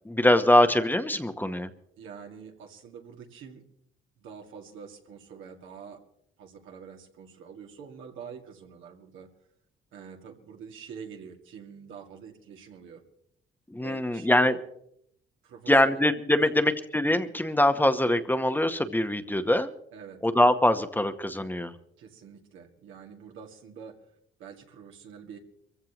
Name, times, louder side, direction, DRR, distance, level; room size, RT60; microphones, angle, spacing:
voice 1, 0.0-1.7 13.7-14.5 15.7-19.7 20.2-21.7, left 1 dB, 10° left, 9 dB, 0.9 m, -23 dB
voice 2, 2.0-3.6 4.2-6.0 6.4-9.3 9.9-13.0 13.8-14.6 15.4-16.0 16.4-16.6 19.9-20.2 22.0-24.0 24.4-25.4, right 7 dB, 85° right, 2 dB, 2.2 m, -45 dB
24.5 x 15.0 x 3.0 m, 0.72 s
cardioid pair, 90°, 20 cm